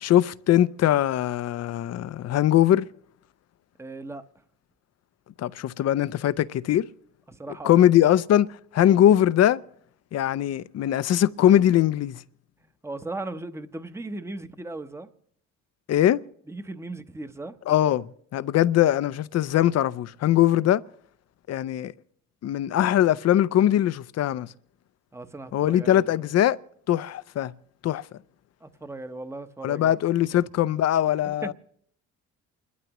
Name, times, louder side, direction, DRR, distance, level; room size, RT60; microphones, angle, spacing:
voice 1, 0.0-2.9 5.4-6.9 7.6-8.5 8.7-9.6 10.1-12.2 15.9-16.2 17.7-20.8 21.5-21.9 22.4-24.5 25.5-26.6 26.9-27.5 27.8-28.0 29.6-31.5, left 12 dB, 55° left, 0.5 m, -21 dB
voice 2, 3.8-4.2 7.3-7.8 12.8-15.1 16.5-17.5 25.1-26.0 28.6-30.0 30.3-30.5 31.2-31.5, right 2 dB, 10° right, 0.8 m, -37 dB
28.5 x 12.5 x 3.0 m
cardioid pair, 90°, 30 cm